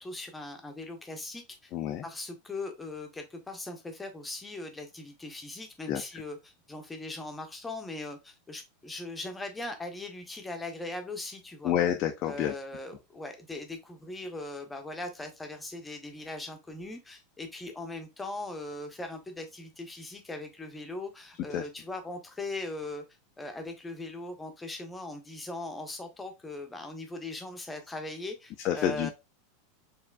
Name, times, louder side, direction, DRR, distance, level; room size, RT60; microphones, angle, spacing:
voice 1, 0.0-1.7 2.0-11.7 12.2-23.0 23.4-29.1, left 2 dB, 10° left, 0.9 m, -40 dB
voice 2, 1.7-2.0 5.9-6.0 11.6-12.5 21.5-21.6 28.6-29.1, left 10 dB, 40° left, 0.4 m, -28 dB
4.3 x 3.1 x 2.3 m
figure-of-eight pair, 85°, 0 cm